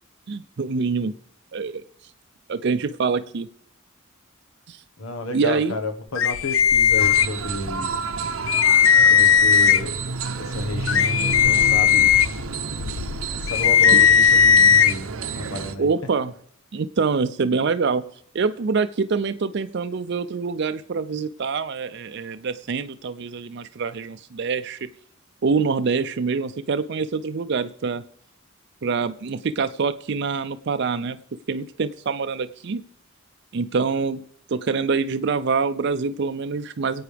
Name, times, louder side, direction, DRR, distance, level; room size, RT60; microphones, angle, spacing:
voice 1, 0.3-1.1 1.5-1.8 2.5-3.5 4.7-4.8 5.3-5.7 13.9-14.0 15.8-16.3 16.7-18.0 18.3-24.8 25.4-28.0 28.8-31.2 31.5-32.8 33.5-34.2 34.5-37.0, right 5 dB, 55° right, 10 dB, 0.5 m, -25 dB
voice 2, 5.0-8.0 9.0-9.9 10.4-12.1 13.4-15.1 15.4-15.9, left 2 dB, 85° left, 6 dB, 1.3 m, -31 dB
sound 1, 6.2-7.7 8.1-8.2 8.5-10.0 10.5-14.9, left 8 dB, 65° left, 0.5 m, -17 dB
sound 2, 7.0-15.7, right 5 dB, 85° right, 0.7 m, -31 dB
25.5 x 8.6 x 3.4 m, 0.66 s
head